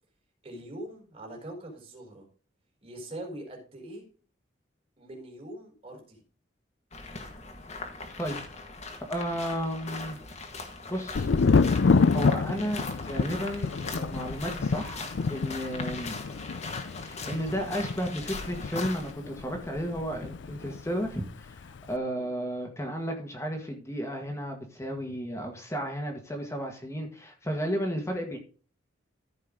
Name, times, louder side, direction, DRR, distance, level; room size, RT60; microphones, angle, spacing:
voice 1, 0.4-2.3 2.8-4.1 5.0-6.2 22.1-22.3, right 1 dB, 30° right, 0 dB, 4.2 m, -42 dB
sound 1, 6.9-19.1, left 3 dB, 35° left, 1.6 m, -40 dB
voice 2, 9.1-10.2 10.9-11.3 12.1-16.2 17.0-28.4, equal, 15° left, 3 dB, 1.7 m, -33 dB
Thunder, 11.2-20.8 21.1-21.8, left 4 dB, 70° left, 0.5 m, -28 dB
14.0 x 5.4 x 3.8 m, 0.40 s
head